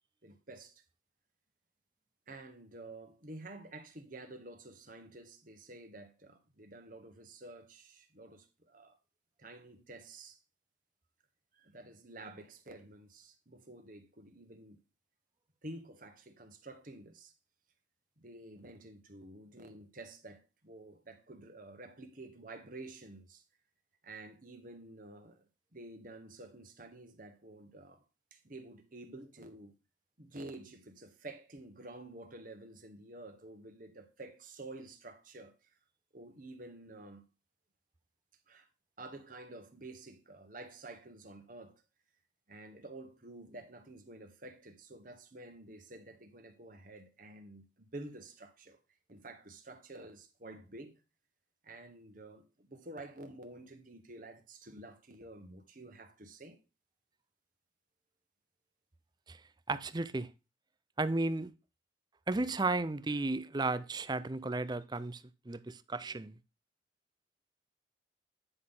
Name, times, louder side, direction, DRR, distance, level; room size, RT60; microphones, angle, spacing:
voice 1, 0.2-0.8 2.3-9.0 9.4-10.4 11.6-14.8 15.6-17.3 18.2-23.4 24.0-25.5 25.7-28.0 28.3-29.8 30.2-35.5 36.1-37.2 38.5-38.7 39.0-41.8 42.5-48.8 49.1-51.0 51.6-56.6, right 2 dB, 45° right, 1.5 m, -50 dB
voice 2, 59.7-60.3 61.0-61.5 62.3-66.4, right 2 dB, 20° right, 0.5 m, -34 dB
9.7 x 6.0 x 3.8 m
head